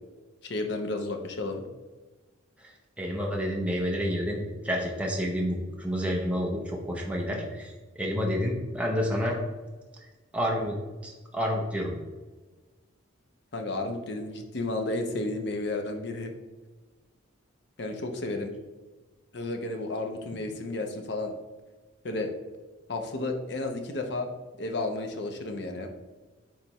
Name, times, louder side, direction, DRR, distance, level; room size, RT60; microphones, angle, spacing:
voice 1, 0.4-1.6 13.5-16.3 17.8-18.5 19.3-21.3 22.0-22.3 22.9-24.3 24.6-25.9, left 2 dB, 55° left, 4 dB, 0.8 m, -32 dB
voice 2, 3.0-9.4 10.3-10.7 11.0-11.9, equal, 5° right, -2 dB, 0.8 m, -29 dB
10.0 x 3.4 x 3.0 m, 1.3 s
head